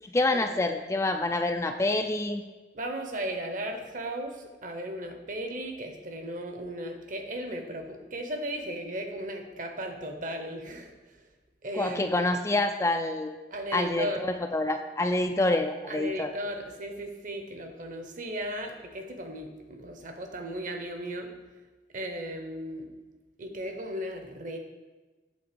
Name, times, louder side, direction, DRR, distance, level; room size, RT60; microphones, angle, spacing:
voice 1, 0.0-2.4 11.8-13.3 13.7-16.3, left 2 dB, 15° left, 6 dB, 0.3 m, -27 dB
voice 2, 2.7-10.9 11.6-12.2 13.5-14.3 15.9-21.3 21.9-22.9 23.4-24.6, right 1 dB, 45° right, 4 dB, 0.9 m, -36 dB
8.3 x 3.8 x 6.8 m, 1.2 s
head